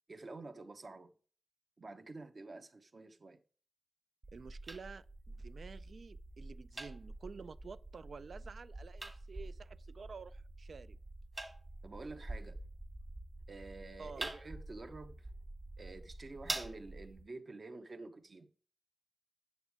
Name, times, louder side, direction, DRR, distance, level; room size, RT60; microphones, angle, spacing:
voice 1, 0.1-1.1 1.8-3.4 11.8-12.6 13.5-15.3 15.8-18.5, right 3 dB, 45° right, 0.8 m, -49 dB
sound 1, 4.2-17.2, right 2 dB, 30° right, 1.4 m, -46 dB
voice 2, 4.3-11.0 14.0-14.3, right 5 dB, 70° right, 0.3 m, -50 dB
9.0 x 7.0 x 3.5 m
wide cardioid pair, 130°, 0 cm